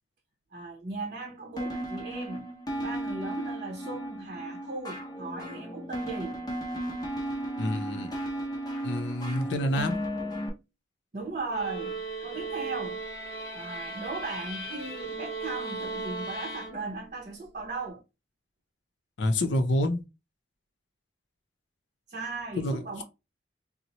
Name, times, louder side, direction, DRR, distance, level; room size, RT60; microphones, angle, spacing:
voice 1, 0.5-2.5 2.8-6.4 11.1-13.0 13.5-18.0 22.1-23.0, right 3 dB, 45° right, 0.6 m, -37 dB
sound 1, 1.6-10.5, right 1 dB, 20° left, 0.7 m, -35 dB
voice 2, 7.6-8.1 8.8-10.0 19.2-20.0 22.6-23.0, left 1 dB, 80° left, 0.6 m, -28 dB
sound 2, 11.5-17.2, right 3 dB, 55° left, 0.8 m, -37 dB
4.1 x 2.0 x 2.9 m
head